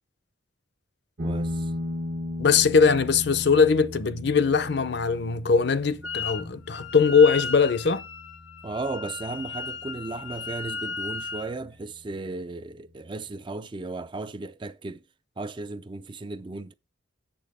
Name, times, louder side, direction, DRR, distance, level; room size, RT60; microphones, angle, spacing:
voice 1, 1.2-1.7 8.6-15.0 15.4-16.7, right 3 dB, 25° right, 0.4 m, -35 dB
sound 1, 1.2-10.2, left 1 dB, 65° right, 1.4 m, -36 dB
voice 2, 2.4-8.0, left 5 dB, 60° left, 0.6 m, -21 dB
Wind instrument woodwind instrument, 6.0-6.4 6.7-11.5, left 4 dB, 85° left, 1.1 m, -35 dB
8.5 x 7.0 x 3.6 m
head